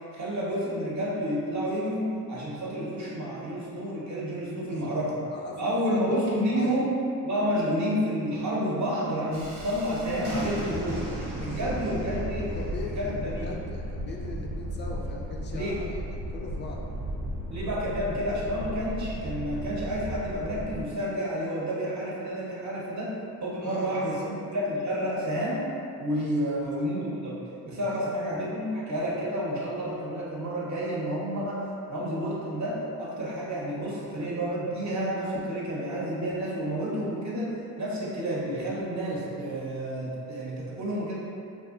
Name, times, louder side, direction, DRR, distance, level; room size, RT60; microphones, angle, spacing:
voice 1, 0.1-5.2 5.6-11.1 11.4-12.5 12.9-13.5 15.5-15.8 17.5-23.1 23.4-25.7 26.0-37.5 37.8-41.2, equal, 35° right, -5 dB, 0.8 m, -30 dB
voice 2, 4.7-5.0 5.3-6.8 11.3-11.8 12.4-16.8 23.6-24.3 26.4-26.5 27.9-28.0, left 3 dB, 25° left, -1 dB, 0.3 m, -40 dB
Thunderstorm, 9.3-20.8, equal, 90° right, 0.6 m, -35 dB
2.6 x 2.3 x 2.4 m, 2.6 s
hypercardioid pair, 45°, 48 cm